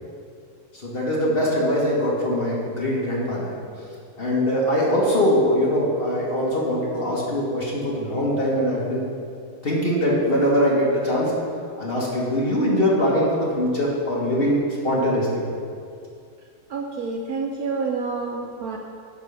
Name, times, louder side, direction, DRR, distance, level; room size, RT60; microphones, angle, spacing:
voice 1, 0.7-3.5 4.2-9.0 9.6-11.3 11.8-14.6 14.8-15.3, equal, 35° left, -5 dB, 1.5 m, -22 dB
voice 2, 16.7-18.8, right 4 dB, 70° right, 1 dB, 0.9 m, -29 dB
10.5 x 3.6 x 6.7 m, 2.3 s
omnidirectional pair, 2.0 m